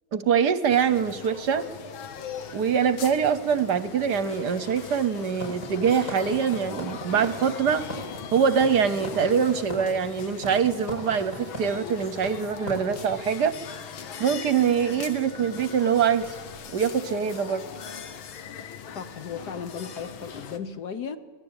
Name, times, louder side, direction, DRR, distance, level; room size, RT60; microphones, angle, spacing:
voice 1, 0.1-1.6 2.5-7.9 8.3-13.6 14.2-16.3 16.7-17.6, right 7 dB, 60° right, 13 dB, 1.3 m, -24 dB
sound 1, 0.7-20.6, left 7 dB, 80° left, 2.1 m, -40 dB
sound 2, 5.4-13.2, equal, 40° left, 7.4 m, -36 dB
voice 2, 18.9-21.2, left 6 dB, 55° left, 11 dB, 1.5 m, -35 dB
25.0 x 18.5 x 8.9 m, 1.4 s
omnidirectional pair, 2.2 m